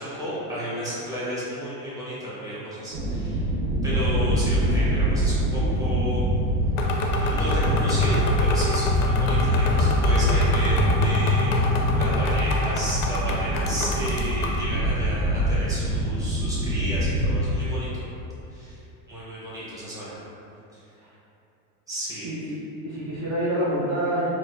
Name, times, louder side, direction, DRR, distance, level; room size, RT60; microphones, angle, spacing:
voice 1, 0.0-3.5 3.8-6.2 7.2-18.1 18.5-18.8 19.1-20.2 20.7-20.8 21.9-22.3, equal, 5° right, -10 dB, 0.9 m, -33 dB
sound 1, 2.9-17.4, equal, 75° right, 0.7 m, -23 dB
sound 2, 6.8-14.7, left 2 dB, 50° left, 0.5 m, -30 dB
voice 2, 22.2-22.5 22.8-24.3, right 1 dB, 40° right, -9 dB, 0.7 m, -27 dB
4.2 x 2.1 x 2.6 m, 2.8 s
supercardioid pair, 110°, 47 cm